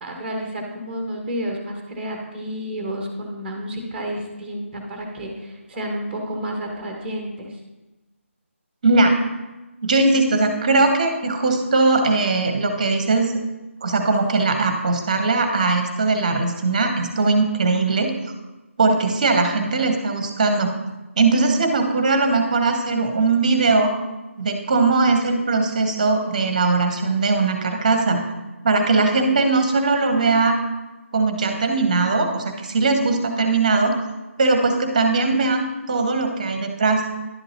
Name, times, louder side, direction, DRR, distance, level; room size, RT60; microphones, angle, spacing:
voice 1, 0.0-7.6, equal, 5° right, 1 dB, 1.0 m, -30 dB
voice 2, 8.8-9.1 9.8-13.3 13.8-18.1 18.8-20.7 21.2-23.9 24.4-28.2 28.6-30.6 31.1-34.0 34.4-37.0, right 3 dB, 35° right, 6 dB, 0.9 m, -20 dB
11.0 x 6.6 x 2.8 m, 1.1 s
figure-of-eight pair, 150°, 7 cm